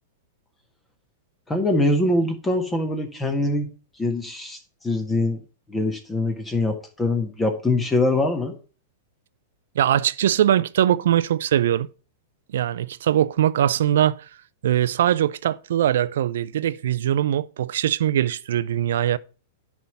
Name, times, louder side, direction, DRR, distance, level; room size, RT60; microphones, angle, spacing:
voice 1, 1.5-3.7 4.0-5.4 5.7-8.5, left 2 dB, 15° left, 1.6 m, -23 dB
voice 2, 9.8-11.9 12.5-14.2 14.6-19.2, right 11 dB, 70° right, 0.5 m, -21 dB
10.5 x 3.7 x 7.0 m
hypercardioid pair, 110°, 0 cm